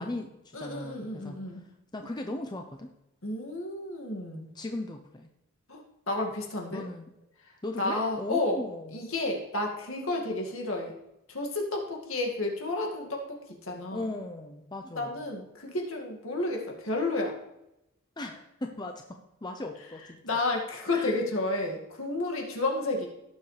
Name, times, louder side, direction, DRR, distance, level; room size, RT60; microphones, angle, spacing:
voice 1, 0.0-1.6 1.9-2.9 4.5-5.3 6.7-7.1 7.6-9.1 13.9-15.2 18.2-20.4 20.9-21.2, left 2 dB, 20° left, 4 dB, 0.6 m, -38 dB
voice 2, 0.5-1.6 3.2-4.5 5.7-6.8 7.8-8.6 8.9-10.9 11.3-13.4 13.7-14.0 15.0-17.3 20.2-23.1, left 2 dB, 65° left, 1 dB, 2.1 m, -31 dB
17.0 x 7.0 x 3.3 m, 0.89 s
head